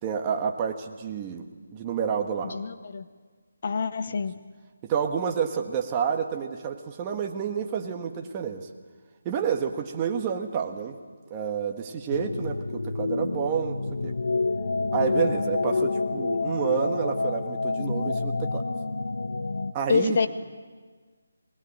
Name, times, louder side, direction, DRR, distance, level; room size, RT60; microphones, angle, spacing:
voice 1, 0.0-2.6 4.1-4.2 4.8-8.7 9.2-11.0 11.3-13.8 14.0-14.2 14.9-18.6 19.7-20.2, right 7 dB, 20° right, 3 dB, 1.6 m, -29 dB
voice 2, 2.4-3.0 3.6-4.3 19.9-20.3, left 5 dB, 50° left, 12 dB, 1.0 m, -26 dB
sound 1, 12.1-19.7, left 3 dB, 80° left, 1.3 m, -28 dB
21.0 x 20.0 x 8.9 m, 1.5 s
figure-of-eight pair, 165°, 0 cm